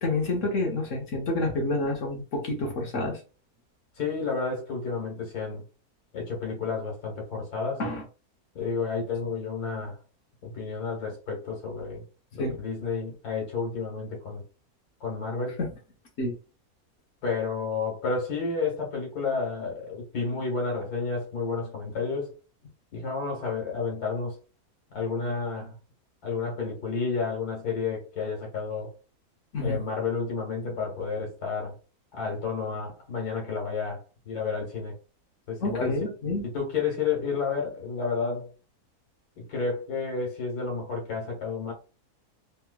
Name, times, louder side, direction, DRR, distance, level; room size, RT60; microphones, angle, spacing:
voice 1, 0.0-3.2 7.8-8.0 12.4-12.6 15.6-15.7 16.2-16.3 29.5-29.8 35.6-36.4, left 2 dB, 60° left, 1.2 m, -28 dB
voice 2, 4.0-5.6 6.1-7.8 8.6-10.0 10.4-12.0 12.3-14.4 15.0-15.6 17.2-22.3 22.9-24.4 24.9-25.7 26.2-28.9 29.6-31.7 32.1-34.0 34.3-34.9 35.5-36.0 36.5-38.5 39.4-41.7, left 4 dB, 90° left, 1.9 m, -31 dB
3.5 x 2.9 x 2.3 m
omnidirectional pair, 1.6 m